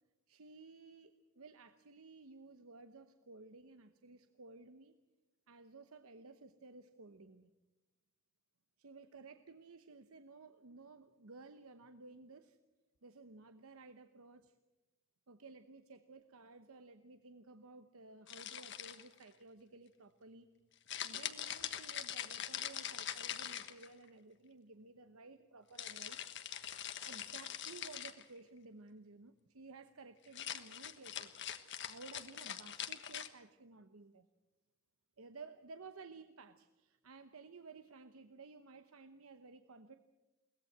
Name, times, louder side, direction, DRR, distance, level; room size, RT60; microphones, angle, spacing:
voice 1, 0.3-5.0 5.5-7.5 8.8-12.6 13.0-14.5 15.3-20.5 21.0-26.2 27.0-31.3 31.9-34.3 35.2-40.0, right 3 dB, 90° right, 10 dB, 0.9 m, -55 dB
sound 1, 18.3-19.2 20.9-24.1 25.8-28.3 30.3-33.3, left 10 dB, 55° left, 1.3 m, -43 dB
22.0 x 18.5 x 8.0 m, 1.1 s
head